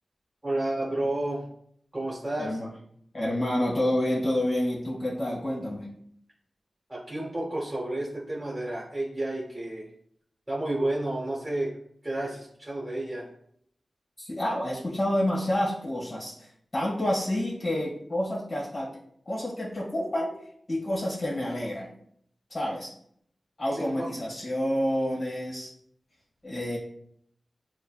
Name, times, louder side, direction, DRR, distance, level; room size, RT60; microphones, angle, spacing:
voice 1, 0.4-1.4 1.9-2.6 6.9-9.9 10.5-11.7 12.0-13.3 23.7-24.1, right 1 dB, 20° right, -4 dB, 1.1 m, -31 dB
voice 2, 2.4-2.7 3.1-5.9 14.2-18.9 19.2-20.4 20.7-21.9 22.5-22.9 23.6-25.7 26.4-26.8, left 1 dB, 45° left, -6 dB, 1.4 m, -28 dB
6.4 x 2.2 x 2.3 m, 0.66 s
cardioid pair, 50°, 0 cm